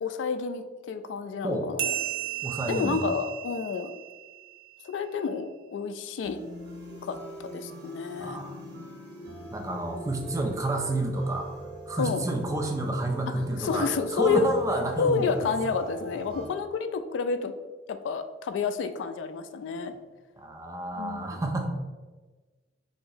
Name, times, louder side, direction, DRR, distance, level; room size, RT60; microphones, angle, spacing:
voice 1, 0.0-1.9 2.7-3.9 4.8-6.4 7.0-7.2 7.5-8.4 12.0-12.2 13.6-14.6 15.0-17.5 17.9-19.9 20.9-21.4, left 5 dB, 80° left, 9 dB, 0.3 m, -29 dB
sound 1, 1.8-4.8, right 13 dB, 90° right, 0.4 m, -34 dB
voice 2, 2.4-3.1 8.2-8.8 9.5-15.5 20.4-21.7, right 2 dB, 20° right, 3 dB, 0.4 m, -30 dB
sound 2, 6.2-16.5, right 2 dB, 60° right, 1.2 m, -41 dB
2.9 x 2.6 x 3.8 m, 1.3 s
head